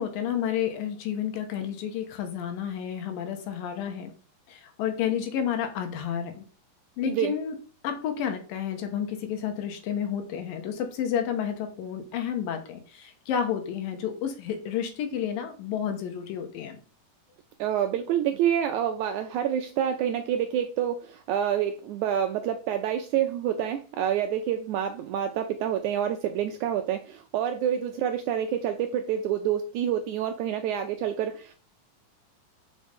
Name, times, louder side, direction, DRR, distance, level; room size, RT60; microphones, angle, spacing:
voice 1, 0.0-4.1 4.5-6.4 7.0-7.6 7.8-16.8, left 8 dB, 80° left, 6 dB, 2.7 m, -31 dB
voice 2, 7.0-7.4 17.6-31.5, right 9 dB, 85° right, 6 dB, 1.7 m, -27 dB
5.4 x 5.4 x 5.2 m, 0.38 s
omnidirectional pair, 4.1 m